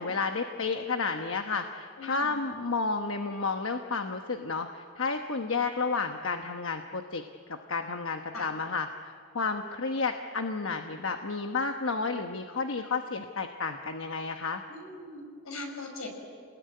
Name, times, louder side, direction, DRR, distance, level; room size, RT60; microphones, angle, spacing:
voice 1, 0.0-7.2 7.5-14.6, left 4 dB, 70° left, 5 dB, 1.1 m, -31 dB
voice 2, 2.0-2.5 8.3-8.5 14.7-16.1, left 2 dB, 90° left, 2 dB, 6.2 m, -41 dB
28.0 x 20.5 x 9.5 m, 2.2 s
head